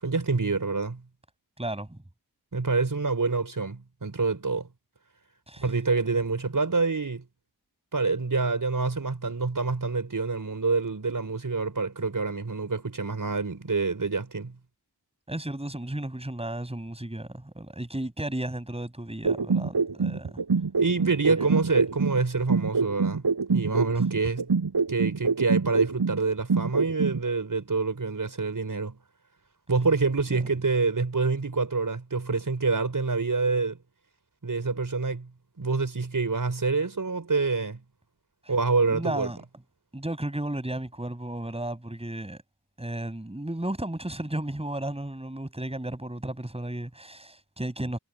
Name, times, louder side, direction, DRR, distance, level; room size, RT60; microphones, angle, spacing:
voice 1, 0.0-1.0 2.5-4.7 5.6-7.2 7.9-14.5 20.8-24.5 24.9-29.0 29.7-33.8 34.4-35.3 35.6-37.8 38.5-39.3, right 4 dB, 55° right, 5.5 m, -27 dB
voice 2, 1.6-2.0 5.5-5.6 15.3-20.4 21.4-21.5 38.9-39.4 39.9-42.4 42.8-48.0, right 1 dB, 15° right, 6.6 m, -34 dB
sound 1, 19.2-22.2 22.5-26.2 26.5-27.2, right 4 dB, 75° right, 5.0 m, -25 dB
wide cardioid pair, 90°, 39 cm